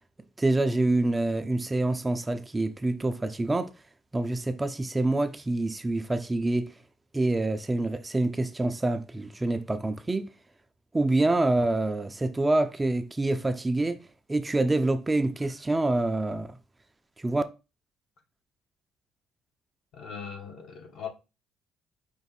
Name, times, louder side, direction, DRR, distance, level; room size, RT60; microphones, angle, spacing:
voice 1, 0.4-3.7 4.1-6.7 7.1-10.3 10.9-14.0 14.3-16.6 17.2-17.4, right 2 dB, 15° right, 0.4 m, -26 dB
voice 2, 19.9-21.1, left 7 dB, 65° left, 1.3 m, -39 dB
5.3 x 2.5 x 4.0 m
cardioid pair, 105°, 0 cm